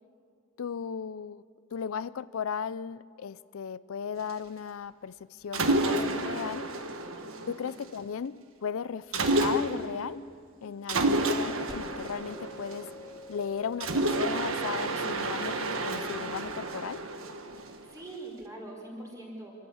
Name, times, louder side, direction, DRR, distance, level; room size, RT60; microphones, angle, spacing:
voice 1, 0.6-1.4 1.7-6.6 7.5-10.2 10.6-12.9 13.3-17.0, left 7 dB, 85° left, 17 dB, 0.4 m, -36 dB
Mechanisms, 5.5-8.0 9.1-10.0 10.9-13.2 13.8-18.0, right 2 dB, 80° right, 1.4 m, -30 dB
voice 2, 7.2-7.5 17.7-19.5, right 2 dB, 15° right, -2 dB, 5.0 m, -43 dB
sound 1, 11.7-16.7, left 1 dB, 5° left, 3.7 m, -49 dB
26.0 x 14.0 x 8.7 m, 2.4 s
head